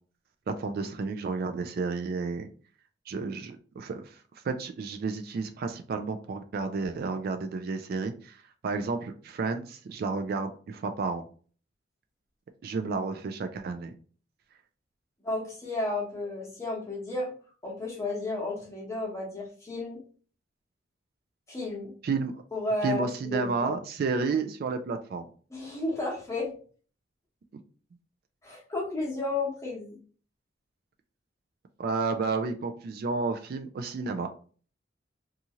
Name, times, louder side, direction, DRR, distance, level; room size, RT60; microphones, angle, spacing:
voice 1, 0.5-2.5 3.1-11.2 12.6-13.9 22.0-22.4 22.8-25.3 31.8-34.3, right 4 dB, 55° right, 7 dB, 0.3 m, -31 dB
voice 2, 15.2-17.3 17.6-20.0 21.5-21.9 22.5-23.8 25.5-26.5 28.4-30.0, left 2 dB, 15° left, -2 dB, 0.9 m, -32 dB
2.7 x 2.4 x 2.8 m, 0.42 s
head